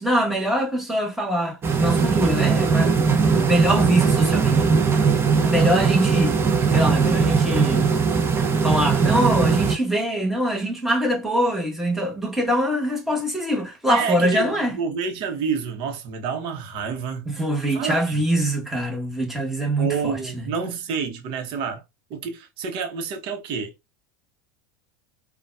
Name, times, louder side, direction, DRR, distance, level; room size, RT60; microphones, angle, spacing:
voice 1, 0.0-4.6 5.4-7.9 8.6-14.8 17.3-20.1, right 1 dB, 5° right, 1.2 m, -23 dB
sound 1, 1.6-9.8, right 5 dB, 20° right, 0.7 m, -20 dB
voice 2, 13.9-17.3 17.7-18.2 19.8-21.8 22.1-23.7, right 5 dB, 55° right, 0.9 m, -28 dB
3.9 x 2.3 x 2.3 m
supercardioid pair, 110°, 11 cm